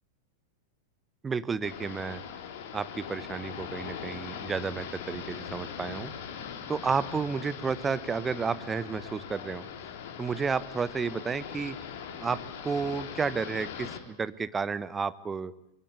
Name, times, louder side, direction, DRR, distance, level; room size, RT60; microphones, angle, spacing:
voice 1, 1.2-2.2 2.7-6.1 6.7-9.6 10.2-11.8 12.2-15.5, right 5 dB, 15° right, 16 dB, 1.2 m, -31 dB
sound 1, 1.6-14.0, left 7 dB, 50° left, 3.4 m, -41 dB
25.5 x 22.5 x 8.2 m, 0.79 s
figure-of-eight pair, 90°, 0 cm